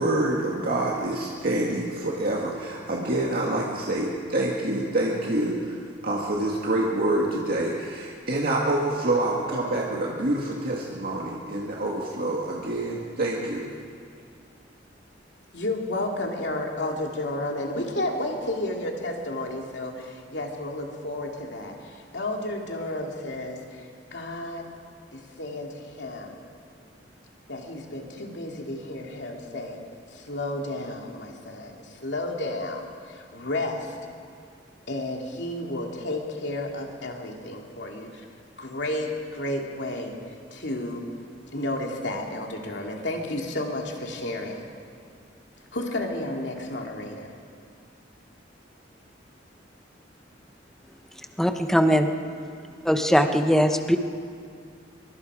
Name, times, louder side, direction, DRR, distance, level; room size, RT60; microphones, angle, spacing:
voice 1, 0.0-5.8 6.0-13.6, right 1 dB, 55° right, -3 dB, 2.0 m, -26 dB
voice 2, 15.5-23.8 24.1-24.7 25.1-26.4 27.5-29.8 30.1-34.0 34.9-38.2 38.6-40.1 40.5-41.0 41.5-44.7 45.7-47.3, left 1 dB, 70° left, 1 dB, 2.8 m, -32 dB
voice 3, 51.4-52.1 52.8-54.0, equal, 5° left, 6 dB, 1.0 m, -20 dB
24.0 x 23.5 x 5.0 m, 2.2 s
head